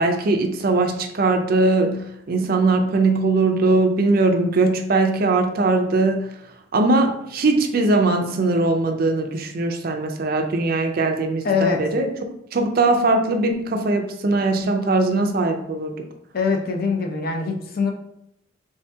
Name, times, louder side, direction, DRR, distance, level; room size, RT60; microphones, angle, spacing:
voice 1, 0.0-6.3 6.7-12.1 12.5-15.9, right 3 dB, 50° right, 4 dB, 0.4 m, -20 dB
voice 2, 11.4-11.8 16.3-17.9, left 5 dB, 50° left, 3 dB, 0.5 m, -22 dB
3.6 x 2.7 x 3.4 m, 0.76 s
head